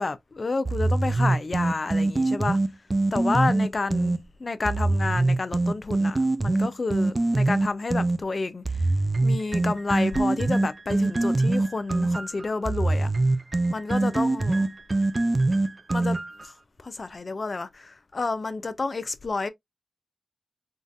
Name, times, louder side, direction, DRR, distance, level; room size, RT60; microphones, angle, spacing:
voice 1, 0.0-2.6 3.1-8.9 9.2-13.1 13.7-14.7 15.9-19.5, left 3 dB, 45° left, 0.5 m, -30 dB
sound 1, 0.7-4.2 4.7-8.2 8.7-16.5, right 2 dB, 35° right, 0.3 m, -23 dB
3.6 x 2.4 x 2.6 m
wide cardioid pair, 85°, 0 cm